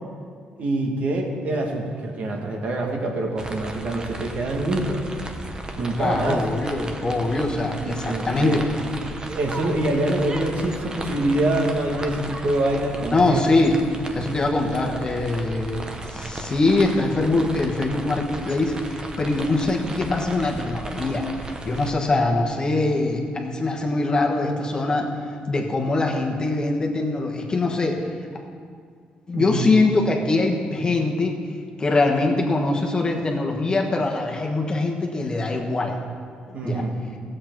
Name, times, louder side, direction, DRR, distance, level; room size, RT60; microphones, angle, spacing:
voice 1, 0.6-5.0 5.8-6.4 7.8-8.6 9.3-13.4 29.3-29.6 36.5-37.0, right 1 dB, 55° right, 1 dB, 1.7 m, -25 dB
sound 1, 3.4-21.9, right 2 dB, 25° right, 1.0 m, -35 dB
voice 2, 5.9-8.7 13.1-13.8 14.1-25.1 25.5-28.1 29.3-31.4 31.8-36.0 36.5-36.8, left 2 dB, 25° left, 1 dB, 1.3 m, -23 dB
15.0 x 7.8 x 4.6 m, 2.1 s
cardioid pair, 110°, 3 cm